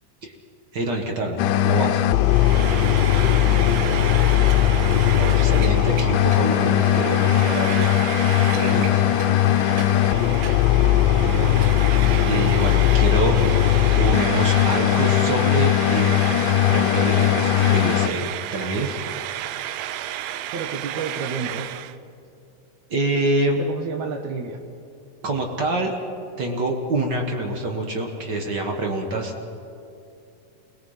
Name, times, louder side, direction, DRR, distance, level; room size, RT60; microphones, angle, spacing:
voice 1, 0.7-2.0 4.6-4.8 5.2-8.0 8.5-9.0 12.2-13.4 13.9-16.4 16.7-18.9 22.9-23.6 25.2-25.9 26.4-29.3, right 2 dB, 45° right, 2 dB, 1.6 m, -26 dB
sound 1, 1.4-18.1, left 11 dB, 80° left, 2.1 m, -19 dB
Frying (food), 2.2-22.0, right 12 dB, 85° right, 2.5 m, -32 dB
voice 2, 3.1-4.2 9.4-9.8 10.1-10.8 11.2-11.7 20.5-21.7 23.6-24.6, right 5 dB, 65° right, 6 dB, 2.3 m, -32 dB
28.0 x 21.0 x 5.7 m, 2.6 s
omnidirectional pair, 4.1 m